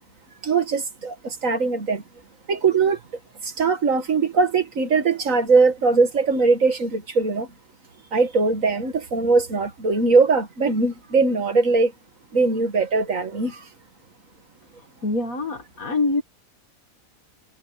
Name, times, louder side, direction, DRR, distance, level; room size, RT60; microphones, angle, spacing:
voice 1, 0.4-2.0 2.5-3.0 3.4-7.5 8.1-11.9 12.3-13.6, right 4 dB, 65° right, 2.2 m, -20 dB
voice 2, 15.0-16.2, left 3 dB, 80° left, 2.4 m, -24 dB
omnidirectional pair, 1.5 m